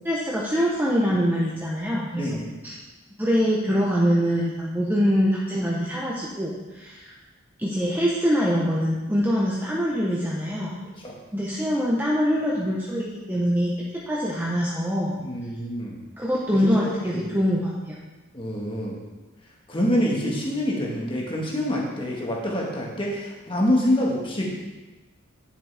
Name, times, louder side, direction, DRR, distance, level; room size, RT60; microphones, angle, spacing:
voice 1, 0.0-2.4 2.6-2.7 3.2-7.1 7.6-10.7 11.3-13.7 14.1-15.2 16.2-18.0, equal, 10° right, -5 dB, 0.9 m, -24 dB
voice 2, 2.1-2.5 11.0-11.1 15.2-16.0 16.5-17.4 18.3-18.9 19.7-24.5, equal, 25° left, -2 dB, 1.6 m, -26 dB
9.9 x 7.3 x 3.4 m, 1.2 s
head